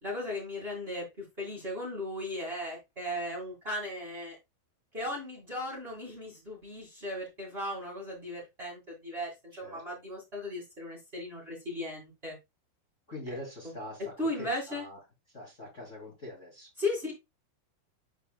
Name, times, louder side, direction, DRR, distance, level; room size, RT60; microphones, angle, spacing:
voice 1, 0.0-4.3 4.9-9.3 9.6-12.4 14.2-14.8 16.8-17.1, left 1 dB, 40° right, -4 dB, 0.8 m, -36 dB
voice 2, 13.1-14.1 14.4-15.0 15.3-16.7, left 1 dB, 45° left, -2 dB, 0.9 m, -43 dB
8.1 x 5.8 x 2.4 m, 0.21 s
omnidirectional pair, 6.0 m